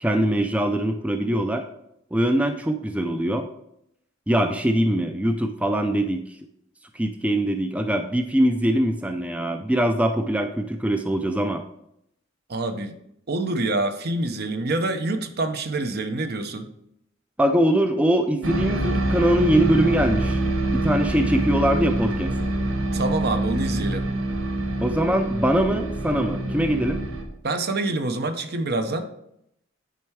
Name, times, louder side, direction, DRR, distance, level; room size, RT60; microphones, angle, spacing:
voice 1, 0.0-1.6 2.1-3.5 4.3-6.2 6.9-11.6 17.4-20.4 20.7-22.3 24.8-27.0, right 1 dB, 5° right, 6 dB, 0.4 m, -22 dB
voice 2, 12.5-12.9 13.3-16.7 22.9-24.1 27.4-29.1, right 2 dB, 50° right, 8 dB, 0.7 m, -26 dB
sound 1, 18.4-27.2, right 1 dB, 85° right, 1.0 m, -25 dB
9.1 x 4.4 x 4.6 m, 0.78 s
head